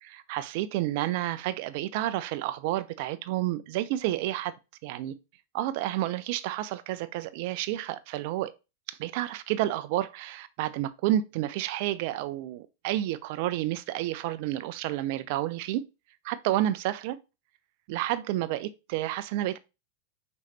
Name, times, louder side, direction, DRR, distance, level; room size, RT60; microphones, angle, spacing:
voice 1, 0.0-4.5 4.8-5.1 5.5-8.5 8.9-15.8 16.2-17.2 17.9-19.6, right 14 dB, 45° right, 0.4 m, -30 dB
5.6 x 3.0 x 2.9 m
figure-of-eight pair, 90°, 0 cm